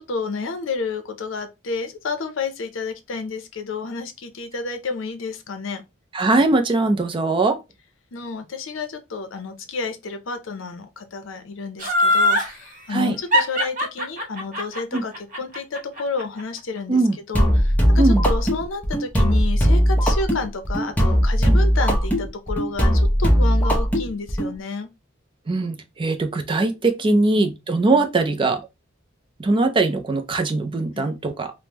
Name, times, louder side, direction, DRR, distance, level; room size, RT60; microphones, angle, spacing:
voice 1, 0.0-5.8 8.1-17.0 17.3-24.9 27.0-27.5 31.0-31.1, left 4 dB, 75° left, 0.6 m, -30 dB
voice 2, 6.1-7.6 12.9-13.2 14.9-15.0 16.9-17.2 18.0-18.2 21.5-21.6 25.5-28.6 29.4-31.5, right 2 dB, 25° right, 0.4 m, -21 dB
Laughter, 11.8-12.5 13.3-16.4 16.8-16.9, left 1 dB, 40° right, 0.9 m, -20 dB
sound 1, 17.3-24.5, equal, 10° left, 0.7 m, -18 dB
3.5 x 2.0 x 2.8 m
head